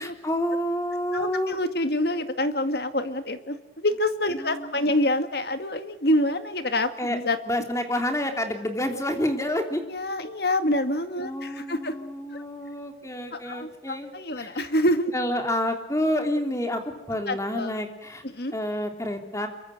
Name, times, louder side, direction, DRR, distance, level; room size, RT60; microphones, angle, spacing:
voice 1, 0.0-1.6 4.4-4.9 7.0-7.2 7.5-9.8 11.2-14.7 15.1-18.2 18.5-19.5, left 1 dB, 15° left, 5 dB, 3.2 m, -29 dB
voice 2, 1.1-7.4 9.9-11.9 12.3-12.4 13.3-15.1 17.3-17.7 18.3-18.5, left 1 dB, 60° left, 9 dB, 2.1 m, -26 dB
26.0 x 23.5 x 7.9 m, 0.90 s
head